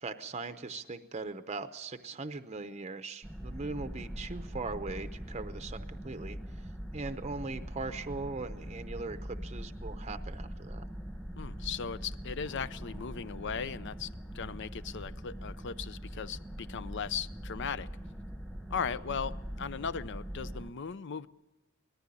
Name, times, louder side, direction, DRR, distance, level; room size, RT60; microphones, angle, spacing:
voice 1, 0.0-10.8, right 3 dB, 30° right, 9 dB, 0.7 m, -40 dB
sound 1, 3.2-20.7, equal, ahead, 1.1 m, -42 dB
voice 2, 11.4-14.1 14.3-17.9 18.7-21.3, left 6 dB, 55° left, 16 dB, 0.6 m, -37 dB
19.5 x 14.5 x 9.8 m, 1.1 s
head